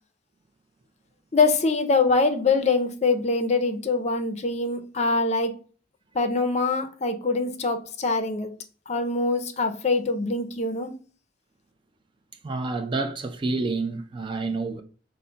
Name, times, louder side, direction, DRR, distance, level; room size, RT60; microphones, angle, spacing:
voice 1, 1.3-5.6 6.1-8.5 8.9-10.9, left 3 dB, 40° left, 0.5 m, -24 dB
voice 2, 12.4-14.8, right 3 dB, 25° right, 0.3 m, -28 dB
5.5 x 2.1 x 3.8 m
head